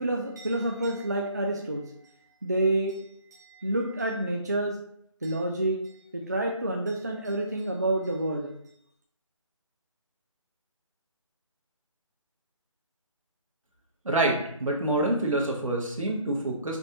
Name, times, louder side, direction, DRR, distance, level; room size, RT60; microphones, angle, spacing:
voice 1, 0.0-1.9 2.4-3.0 3.3-4.8 5.2-5.8 6.1-8.5, right 1 dB, 35° right, 1 dB, 0.4 m, -28 dB
voice 2, 14.0-16.8, right 2 dB, 80° right, 0 dB, 1.3 m, -27 dB
5.2 x 2.4 x 2.9 m, 0.69 s
figure-of-eight pair, 170°, 17 cm